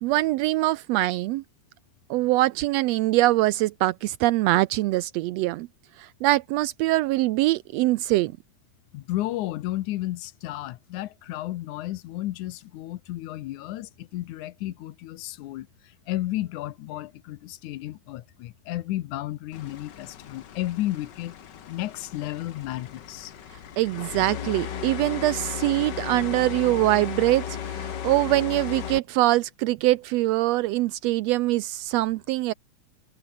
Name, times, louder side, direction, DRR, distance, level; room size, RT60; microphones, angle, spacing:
voice 1, 0.0-1.4 2.1-5.7 6.0-8.3 23.8-32.5, right 17 dB, 85° right, 1.5 m, -23 dB
voice 2, 8.9-21.4 21.7-23.3, left 15 dB, 80° left, 2.3 m, -33 dB
sound 1, 19.5-29.0, left 9 dB, 50° left, 1.3 m, -36 dB
omnidirectional pair, 3.5 m